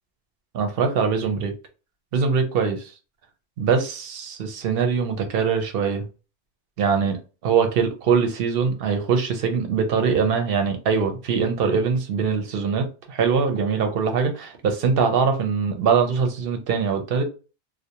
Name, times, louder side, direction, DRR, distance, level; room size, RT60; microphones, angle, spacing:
voice 1, 0.5-1.5 2.1-2.9 3.6-6.1 6.8-17.2, right 6 dB, 65° right, 0.7 m, -22 dB
2.4 x 2.0 x 2.7 m
omnidirectional pair, 1.2 m